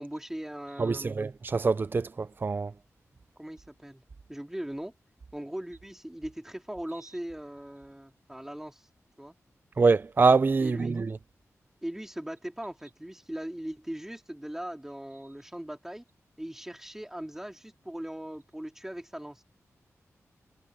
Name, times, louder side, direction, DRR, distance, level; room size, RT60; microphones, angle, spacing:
voice 1, 0.0-1.2 3.4-4.0 4.3-4.9 5.3-8.9 9.2-9.3 10.6-11.0 11.8-16.0 16.4-19.4, right 1 dB, 5° right, 3.6 m, -39 dB
voice 2, 0.8-2.7 9.8-11.2, right 4 dB, 40° right, 0.6 m, -24 dB
wide cardioid pair, 120°, 6 cm